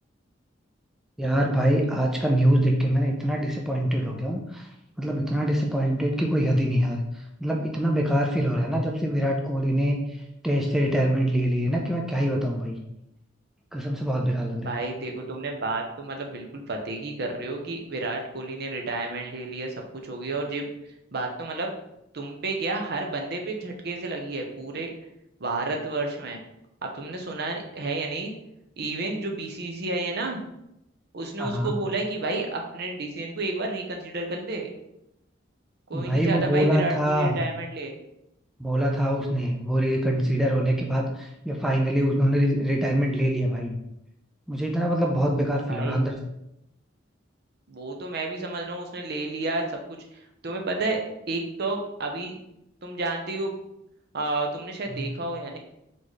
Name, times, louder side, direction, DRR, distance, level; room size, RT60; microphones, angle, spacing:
voice 1, 1.2-4.7 5.0-7.0 7.4-10.0 10.4-12.8 13.7-14.7 31.4-31.8 35.9-37.4 38.6-43.8 44.5-46.2 54.9-55.1, equal, ahead, -1 dB, 0.5 m, -24 dB
voice 2, 14.6-20.7 21.1-21.7 22.1-24.9 25.4-26.4 26.8-28.3 28.8-30.5 31.1-34.7 35.9-37.9 45.7-46.0 47.7-51.0 51.3-52.3 52.8-53.6 54.1-55.6, right 2 dB, 55° right, 2 dB, 0.7 m, -31 dB
3.9 x 3.8 x 3.2 m, 0.82 s
head